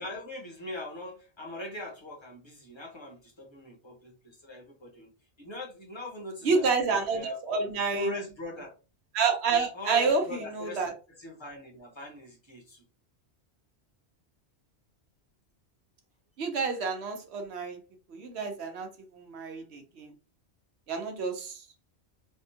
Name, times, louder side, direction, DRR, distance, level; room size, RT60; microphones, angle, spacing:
voice 1, 0.0-5.1 5.4-6.7 7.1-7.6 7.9-8.7 9.7-12.8, left 1 dB, 25° left, -1 dB, 1.0 m, -41 dB
voice 2, 6.4-8.1 9.1-10.9 16.4-17.8 18.1-18.9 19.1-20.1 20.9-21.6, right 4 dB, 70° right, 4 dB, 1.0 m, -29 dB
3.5 x 2.2 x 2.7 m, 0.33 s
omnidirectional pair, 1.1 m